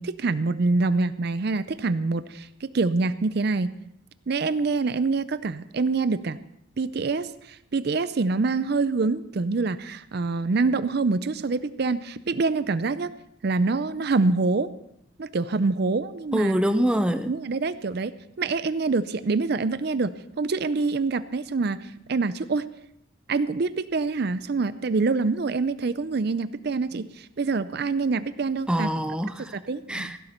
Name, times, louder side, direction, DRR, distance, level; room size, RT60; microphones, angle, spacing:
voice 1, 0.0-3.7 4.3-6.4 6.8-13.1 13.4-14.7 15.2-16.6 17.3-18.1 18.4-20.1 20.4-22.6 23.3-28.9 29.5-30.2, right 3 dB, 50° right, 14 dB, 0.5 m, -25 dB
voice 2, 16.3-17.3 28.7-29.5 29.9-30.2, equal, 5° right, 8 dB, 0.6 m, -24 dB
16.5 x 12.0 x 4.4 m, 0.77 s
head